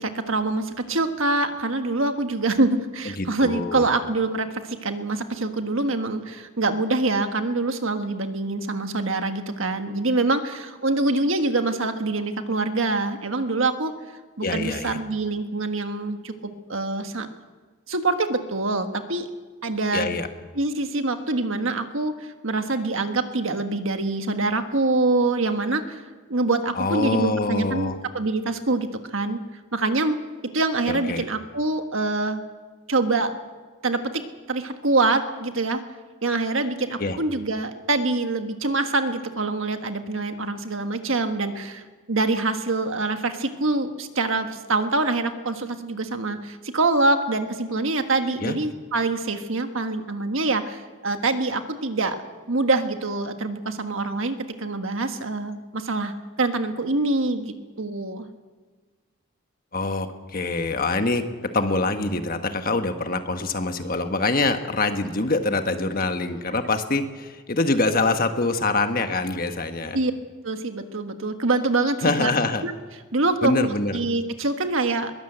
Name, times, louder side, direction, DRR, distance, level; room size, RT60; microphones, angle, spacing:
voice 1, 0.0-13.9 14.4-17.3 17.9-19.3 19.6-20.1 20.5-26.0 26.3-29.4 29.7-30.2 30.5-32.4 32.9-33.3 33.8-34.2 34.5-35.8 36.2-52.2 52.5-58.3 69.9-70.1 70.4-72.3 72.6-72.7 73.1-75.1, right 2 dB, 65° right, 7 dB, 1.5 m, -25 dB
voice 2, 3.2-3.9 14.4-15.0 19.9-20.3 26.8-28.0 30.9-31.2 37.0-37.2 48.4-48.6 59.7-61.2 61.5-70.0 72.0-72.6 73.4-74.0, left 2 dB, 40° left, 7 dB, 1.4 m, -24 dB
21.5 x 16.5 x 8.0 m, 1.4 s
head